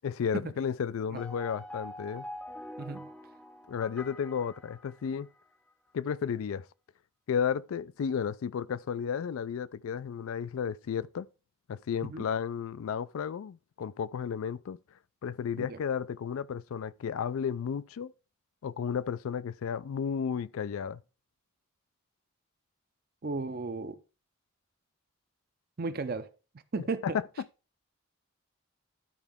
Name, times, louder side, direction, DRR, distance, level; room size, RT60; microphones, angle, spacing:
voice 1, 0.0-2.3 3.7-5.3 5.9-6.7 7.3-11.3 11.7-14.8 15.2-18.1 18.6-21.0 27.0-27.2, left 7 dB, 85° left, 0.4 m, -33 dB
sound 1, 1.2-5.5, left 1 dB, 5° left, 0.6 m, -45 dB
voice 2, 2.8-3.1 12.1-12.2 15.6-15.8 23.2-24.0 25.8-26.3 26.7-27.2, right 3 dB, 45° right, 0.6 m, -34 dB
12.0 x 4.5 x 3.5 m
head